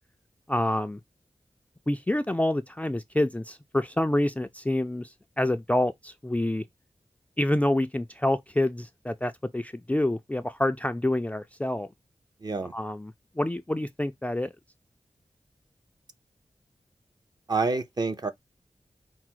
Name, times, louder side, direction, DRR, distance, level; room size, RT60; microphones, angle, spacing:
voice 1, 0.5-1.0 1.9-6.6 7.4-11.9 12.7-14.5, left 1 dB, 15° left, 0.3 m, -27 dB
voice 2, 12.4-12.7 17.5-18.3, right 3 dB, 40° right, 0.6 m, -27 dB
4.8 x 2.0 x 4.4 m
wide cardioid pair, 100°, 11 cm